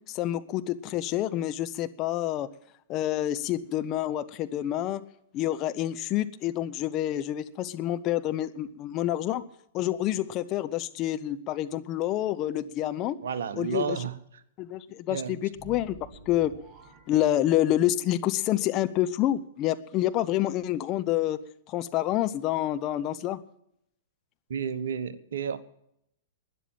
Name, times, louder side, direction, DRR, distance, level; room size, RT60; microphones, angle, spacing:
voice 1, 0.1-2.5 2.9-5.0 5.3-9.4 9.7-13.2 13.6-14.0 14.6-16.0 16.3-16.5 17.1-21.4 21.7-23.4, left 13 dB, 30° left, 11 dB, 0.8 m, -28 dB
voice 2, 13.2-14.4 15.1-15.3 24.5-25.6, right 7 dB, 60° right, 13 dB, 1.1 m, -32 dB
sound 1, 15.5-18.1, right 5 dB, 15° right, 4.9 m, -50 dB
12.5 x 10.0 x 8.8 m, 0.75 s
figure-of-eight pair, 105°, 0 cm